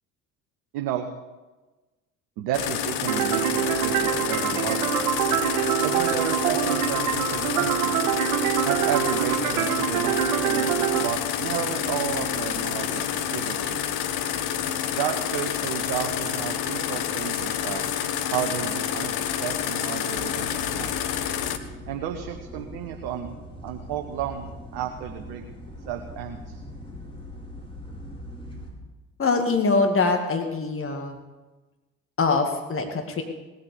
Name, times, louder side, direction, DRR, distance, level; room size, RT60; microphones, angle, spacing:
voice 1, 0.7-1.1 2.4-5.1 5.8-8.0 8.6-13.8 15.0-17.9 18.3-19.1 19.4-20.5 20.8-21.0 21.9-23.3 23.6-25.4 25.8-26.6, right 10 dB, 65° right, 4 dB, 1.4 m, -32 dB
sound 1, 2.5-21.6, left 9 dB, 65° left, 1.2 m, -28 dB
sound 2, 3.1-11.1, right 13 dB, 80° right, 0.7 m, -25 dB
sound 3, 20.1-28.7, equal, 15° left, 4.9 m, -41 dB
voice 2, 29.2-31.2 32.2-33.2, left 3 dB, 30° left, 4 dB, 2.2 m, -23 dB
19.0 x 8.6 x 6.8 m, 1.2 s
hypercardioid pair, 55°, 42 cm